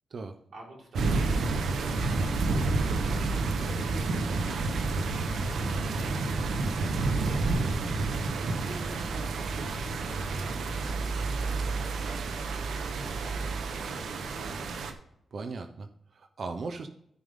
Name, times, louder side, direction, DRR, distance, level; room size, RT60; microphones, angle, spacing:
voice 1, 0.5-8.0 8.7-14.3, right 2 dB, 70° right, -3 dB, 4.1 m, -48 dB
sound 1, 0.9-14.9, right 3 dB, 85° right, 1.0 m, -30 dB
voice 2, 15.3-16.9, right 4 dB, 55° right, 8 dB, 0.7 m, -38 dB
13.0 x 5.3 x 3.7 m, 0.74 s
wide cardioid pair, 115°, 0 cm